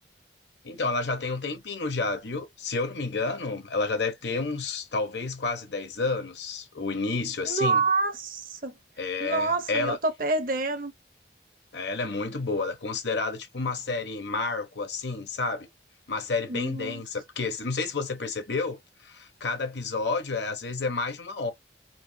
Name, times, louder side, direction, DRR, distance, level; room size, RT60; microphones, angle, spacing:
voice 1, 0.6-7.8 9.0-10.0 11.7-15.7 16.1-21.5, left 3 dB, 80° left, 1.0 m, -30 dB
voice 2, 7.4-8.7 9.2-10.9 16.5-17.0, right 3 dB, 50° right, 0.8 m, -27 dB
4.5 x 3.2 x 2.2 m
head